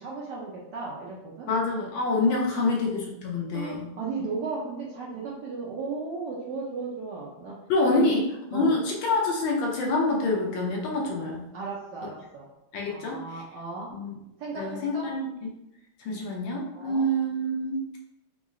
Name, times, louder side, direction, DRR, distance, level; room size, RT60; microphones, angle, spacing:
voice 1, 0.0-1.5 2.5-2.7 3.5-7.6 7.9-8.1 8.5-8.7 11.0-11.1 11.5-12.5 12.9-13.9 14.4-15.1 16.1-16.2 16.7-17.1, right 4 dB, 70° right, -4 dB, 1.0 m, -35 dB
voice 2, 1.5-3.9 7.7-8.2 8.5-11.5 12.7-13.2 13.9-14.2 14.5-15.5 16.0-17.8, left 2 dB, 75° left, -1 dB, 1.2 m, -26 dB
3.7 x 2.1 x 3.5 m, 0.89 s
omnidirectional pair, 2.3 m